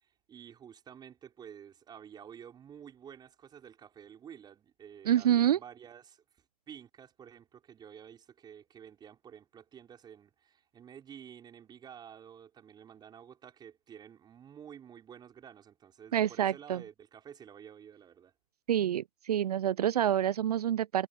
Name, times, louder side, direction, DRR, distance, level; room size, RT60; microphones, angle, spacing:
voice 1, 0.0-18.3, right 8 dB, 20° right, 5.1 m, -51 dB
voice 2, 5.1-5.6 16.1-16.8 18.7-21.1, right 11 dB, 70° right, 0.5 m, -27 dB
hypercardioid pair, 115°, 21 cm